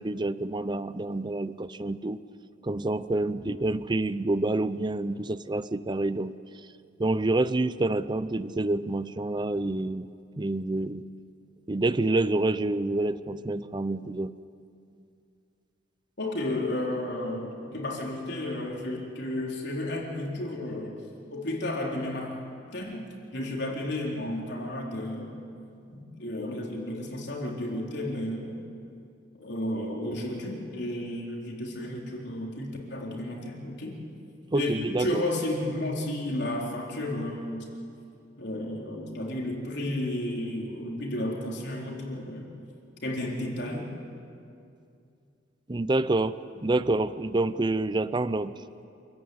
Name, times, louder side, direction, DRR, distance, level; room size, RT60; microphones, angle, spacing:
voice 1, 0.0-2.2 2.6-6.3 7.0-10.1 10.4-11.0 11.7-14.3 34.5-35.2 45.7-46.4 46.6-48.5, right 2 dB, 25° right, 15 dB, 0.6 m, -27 dB
voice 2, 16.2-21.0 21.3-22.4 22.7-23.1 23.3-25.3 25.9-28.6 29.4-34.0 34.5-34.7 35.0-37.7 38.4-42.5 43.0-43.9, left 1 dB, 60° left, -1 dB, 4.1 m, -32 dB
27.5 x 15.0 x 9.6 m, 2.5 s
head